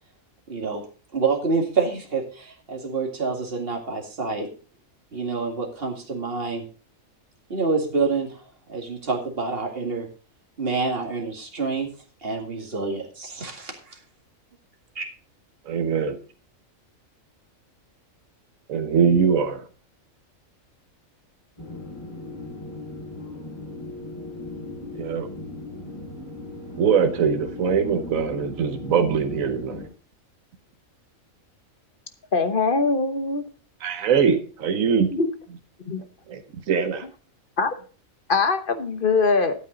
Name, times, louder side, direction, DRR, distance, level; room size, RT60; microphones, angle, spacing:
voice 1, 0.5-0.8 1.1-4.5 5.1-6.6 7.5-8.4 8.7-10.1 10.6-11.9 12.2-14.0 15.0-15.1, right 4 dB, 45° right, 1 dB, 2.3 m, -27 dB
voice 2, 15.7-16.2 18.7-19.6 25.0-25.3 26.8-29.8 33.8-35.1 36.3-36.4 36.7-37.0, right 6 dB, 75° right, 7 dB, 1.4 m, -22 dB
sound 1, 21.6-29.9, left 2 dB, 20° left, 5.0 m, -37 dB
voice 3, 32.3-33.4 35.1-35.3 35.9-36.0 37.6-37.7 38.3-39.5, left 4 dB, 45° left, 9 dB, 1.1 m, -22 dB
12.5 x 8.9 x 3.9 m, 0.38 s
omnidirectional pair, 1.4 m